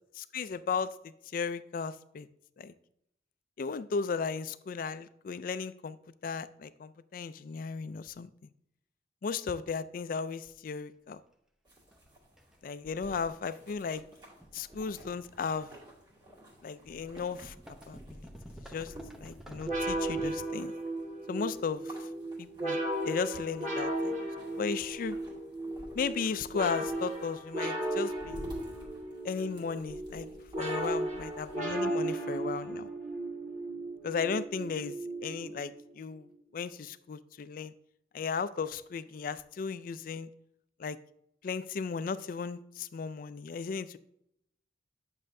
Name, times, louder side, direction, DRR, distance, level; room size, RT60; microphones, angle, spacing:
voice 1, 0.1-2.3 2.6-2.7 3.6-6.0 6.2-8.3 9.2-11.2 12.6-14.0 14.5-15.7 16.6-17.6 17.9-18.3 18.7-20.7 21.3-22.1 22.4-22.8 23.0-24.3 24.6-25.2 25.9-28.4 29.2-30.3 30.6-32.9 34.0-36.3 36.5-37.7 38.1-40.3 40.8-41.0 41.4-44.0, left 5 dB, 50° left, 15 dB, 0.3 m, -35 dB
sound 1, 10.3-10.4 11.9-12.1 12.4-12.6 13.2-13.4 13.7-15.8 16.9-20.3, equal, 5° right, 0.6 m, -49 dB
sound 2, 11.6-31.6, equal, 25° right, 1.9 m, -51 dB
sound 3, 19.6-35.9, right 1 dB, 40° right, 1.6 m, -35 dB
9.8 x 6.3 x 2.6 m, 0.75 s
head